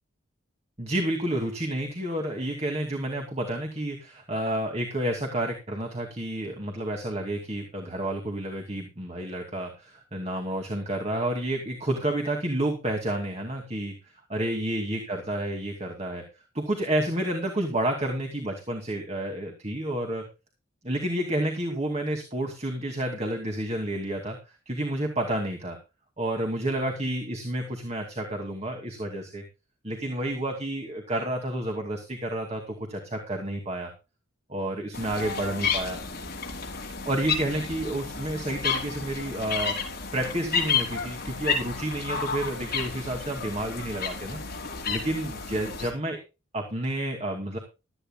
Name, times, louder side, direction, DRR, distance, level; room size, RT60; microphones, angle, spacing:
voice 1, 0.8-13.9 14.3-16.2 16.5-20.2 20.8-24.4 24.7-25.8 26.2-29.4 29.8-33.9 34.5-36.0 37.1-46.2 46.5-47.6, right 1 dB, 30° right, 3 dB, 2.4 m, -30 dB
sound 1, 34.9-45.9, left 5 dB, 45° left, 5.2 m, -31 dB
16.5 x 13.5 x 2.3 m, 0.29 s
head